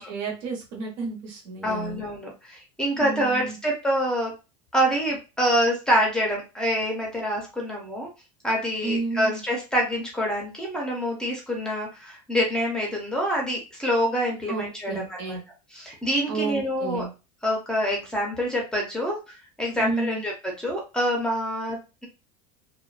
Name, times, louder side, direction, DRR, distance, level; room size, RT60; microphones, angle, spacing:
voice 1, 0.0-2.0 2.9-3.6 8.8-9.4 14.5-15.4 16.3-17.1 19.7-20.2, right 4 dB, 65° right, 0 dB, 1.2 m, -31 dB
voice 2, 1.6-4.3 4.7-8.1 8.4-15.4 15.7-17.1 17.4-22.1, equal, 5° left, -1 dB, 0.6 m, -26 dB
2.3 x 2.2 x 2.4 m, 0.29 s
supercardioid pair, 145°, 18 cm